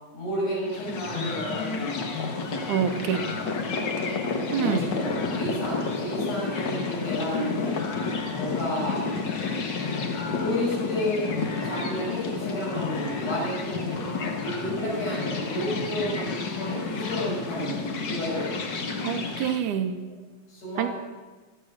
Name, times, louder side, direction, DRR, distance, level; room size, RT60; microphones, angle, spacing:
voice 1, 0.1-2.1 4.5-7.8 8.4-9.1 10.4-11.3 11.6-14.0 14.4-18.6 19.8-20.1 20.5-20.9, equal, 90° left, -5 dB, 7.8 m, -31 dB
sound 1, 0.6-19.6, left 4 dB, 45° left, 1.6 m, -30 dB
voice 2, 2.7-3.2 4.5-4.8 19.0-19.9 20.8-20.9, right 8 dB, 85° right, 9 dB, 2.4 m, -26 dB
16.0 x 12.5 x 6.5 m, 1.3 s
omnidirectional pair, 3.4 m